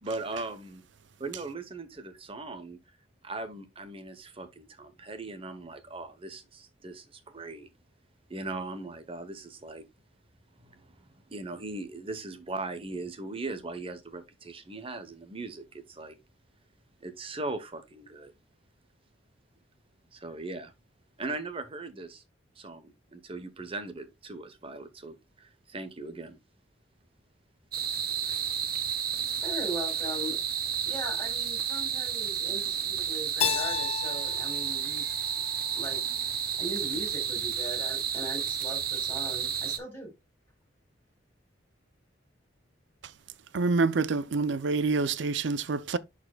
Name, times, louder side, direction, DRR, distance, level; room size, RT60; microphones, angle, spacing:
voice 1, 0.0-0.8 1.2-2.8 3.2-7.7 8.3-9.9 10.6-16.2 17.0-18.3 20.1-20.7 21.2-22.2 22.6-26.4, right 2 dB, 30° right, 0.9 m, -39 dB
sound 1, 27.7-39.8, right 8 dB, 55° right, 1.0 m, -31 dB
voice 2, 29.4-30.4 30.9-35.0 35.8-36.0 36.6-40.1, equal, 10° left, 4.5 m, -39 dB
Keyboard (musical), 33.4-36.2, left 8 dB, 35° left, 0.6 m, -33 dB
voice 3, 43.5-46.0, right 4 dB, 70° right, 0.5 m, -27 dB
11.0 x 4.2 x 2.3 m
head